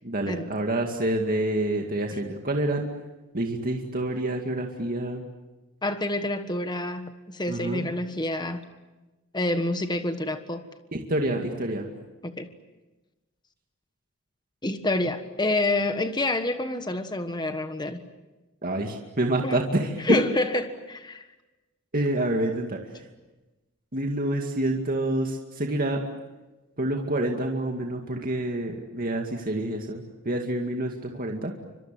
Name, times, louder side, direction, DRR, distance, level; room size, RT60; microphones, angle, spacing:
voice 1, 0.0-2.9 3.3-5.2 7.5-7.8 10.9-11.9 18.6-19.9 21.9-22.8 23.9-26.0 26.8-31.5, right 1 dB, 40° right, 2 dB, 2.3 m, -27 dB
voice 2, 5.8-8.7 9.3-10.7 12.2-12.5 14.6-18.0 19.4-19.6 20.0-21.2, left 2 dB, 20° left, 8 dB, 1.4 m, -28 dB
30.0 x 25.5 x 7.7 m, 1.1 s
head